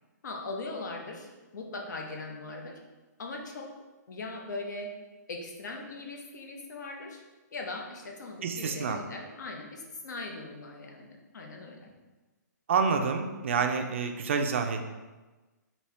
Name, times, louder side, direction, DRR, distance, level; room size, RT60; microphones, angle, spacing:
voice 1, 0.2-2.8 3.2-3.7 4.1-4.9 5.3-7.2 7.5-11.9, left 2 dB, 70° left, 2 dB, 0.8 m, -40 dB
voice 2, 8.4-9.0 12.7-14.8, right 5 dB, 40° right, 5 dB, 0.4 m, -28 dB
4.2 x 2.8 x 3.2 m, 1.2 s
hypercardioid pair, 170°, 10 cm